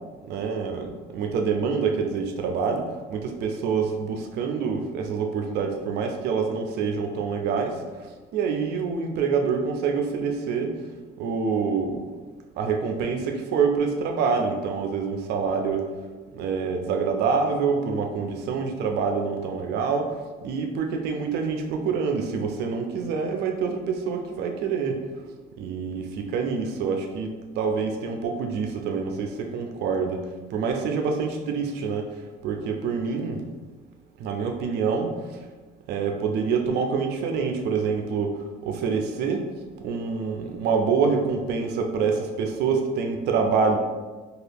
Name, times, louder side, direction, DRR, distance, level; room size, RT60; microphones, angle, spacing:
voice 1, 0.2-10.8 11.2-12.1 12.6-15.9 16.3-25.0 25.6-33.4 34.2-35.4 35.9-39.5 39.8-43.8, right 5 dB, 75° right, 4 dB, 0.4 m, -26 dB
2.8 x 2.4 x 3.3 m, 1.3 s
cardioid pair, 110°, 17 cm